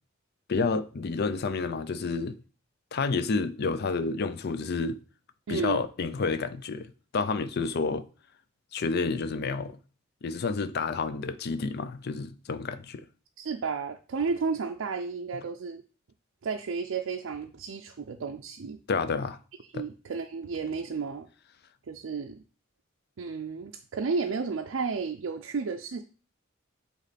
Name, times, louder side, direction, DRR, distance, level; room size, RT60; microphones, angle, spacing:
voice 1, 0.5-2.4 2.9-5.0 5.5-8.1 8.7-9.8 10.2-13.1 18.9-19.4 19.7-19.8, left 4 dB, 50° left, 0.5 m, -29 dB
voice 2, 5.5-5.9 13.4-15.8 16.4-18.8 19.7-21.3 21.9-22.4 23.2-26.0, right 5 dB, 70° right, 0.5 m, -32 dB
8.1 x 3.1 x 4.1 m
head